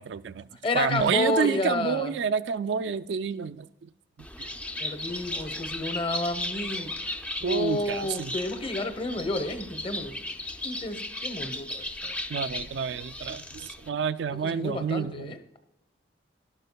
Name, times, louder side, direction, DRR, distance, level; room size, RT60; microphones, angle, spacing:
voice 1, 0.0-0.5 0.7-3.7 4.4-4.5 7.4-8.3 12.3-15.3, right 6 dB, 75° right, 0.4 m, -29 dB
voice 2, 0.6-2.1 4.8-6.9 7.4-10.2 10.6-12.2 14.4-15.4, left 2 dB, 30° left, 0.8 m, -30 dB
Bird, 4.2-13.9, left 1 dB, 5° left, 0.4 m, -36 dB
12.0 x 12.0 x 2.2 m
head